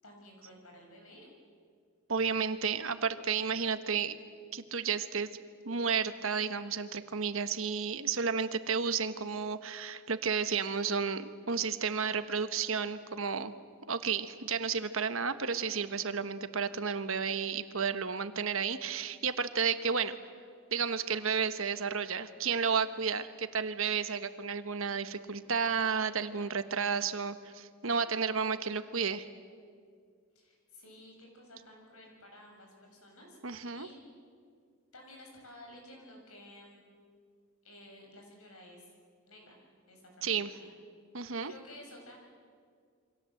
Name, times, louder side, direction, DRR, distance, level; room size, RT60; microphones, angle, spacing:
voice 1, 0.0-1.3 30.4-33.4 33.7-34.0 34.9-36.9 37.6-38.9 39.3-39.6 39.9-40.7 41.4-42.2, left 1 dB, 80° left, 1 dB, 7.3 m, -53 dB
voice 2, 2.1-4.2 4.5-5.3 5.6-13.5 13.9-20.2 20.7-29.3 33.4-33.9 40.2-40.5 41.1-41.5, right 6 dB, 70° right, 10 dB, 1.3 m, -32 dB
28.0 x 24.5 x 7.9 m, 2.1 s
head